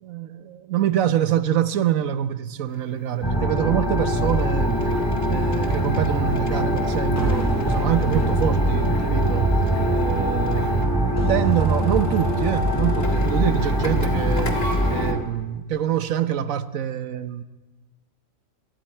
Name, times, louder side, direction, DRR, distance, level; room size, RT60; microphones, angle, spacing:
voice 1, 0.0-4.8 5.3-9.5 9.9-14.6 14.9-17.4, right 10 dB, 85° right, 1.3 m, -25 dB
Printer, 2.7-15.1, left 4 dB, 70° left, 2.3 m, -35 dB
sound 1, 3.2-15.2, right 1 dB, 20° left, 3.0 m, -22 dB
sound 2, 6.5-15.1, right 3 dB, 20° right, 0.5 m, -35 dB
28.5 x 23.0 x 4.5 m
omnidirectional pair, 1.4 m